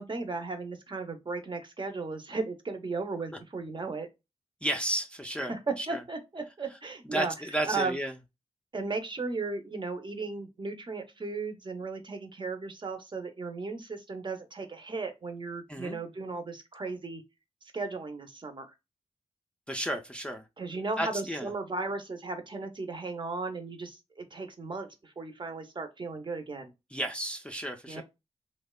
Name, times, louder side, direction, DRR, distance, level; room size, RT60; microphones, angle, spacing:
voice 1, 0.0-4.1 5.5-8.0 8.7-17.2 17.7-18.7 20.6-26.7 27.9-28.0, right 3 dB, 40° right, 0.6 m, -36 dB
voice 2, 4.6-6.0 7.1-8.1 15.7-16.0 19.7-20.4 21.0-21.5 26.9-28.0, right 1 dB, 10° left, 0.4 m, -32 dB
2.8 x 2.1 x 2.2 m
cardioid pair, 60°, 12 cm